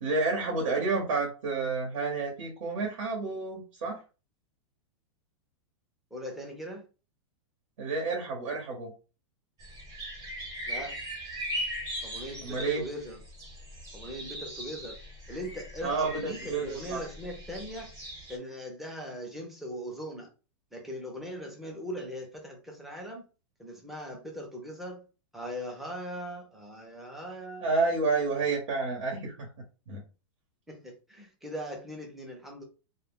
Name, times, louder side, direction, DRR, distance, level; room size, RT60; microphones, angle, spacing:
voice 1, 0.0-4.0 7.8-8.9 12.4-12.8 15.8-17.0 27.6-29.5 29.9-30.0, right 3 dB, 80° right, 1.0 m, -30 dB
voice 2, 6.1-6.8 10.7-11.0 12.0-13.2 13.9-15.0 15.3-17.9 18.3-20.3 20.7-23.2 23.6-25.1 25.3-27.7 30.7-32.6, equal, ahead, 0.5 m, -40 dB
sound 1, 9.6-18.4, equal, 20° right, 0.9 m, -39 dB
2.2 x 2.1 x 3.4 m
supercardioid pair, 160°, 17 cm